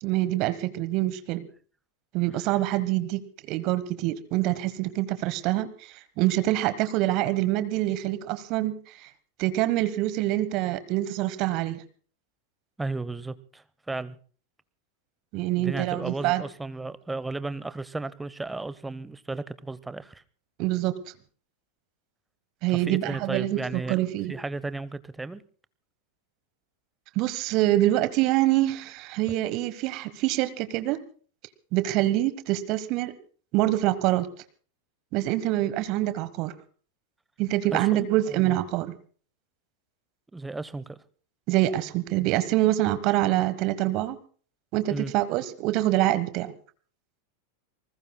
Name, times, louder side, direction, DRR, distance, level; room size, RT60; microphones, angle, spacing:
voice 1, 0.0-1.5 2.1-3.2 3.5-9.1 9.4-11.8 15.3-16.4 20.6-20.9 22.6-24.3 27.1-31.0 31.7-33.1 33.5-34.3 35.1-36.5 37.4-38.9 41.5-44.2 44.7-46.5, right 15 dB, 40° right, 14 dB, 1.1 m, -25 dB
voice 2, 12.8-14.2 15.6-20.2 22.7-25.4 37.7-38.6 40.3-41.0 44.9-45.1, right 3 dB, 10° right, 16 dB, 0.8 m, -34 dB
27.5 x 20.0 x 2.2 m, 0.43 s
figure-of-eight pair, 90°, 0 cm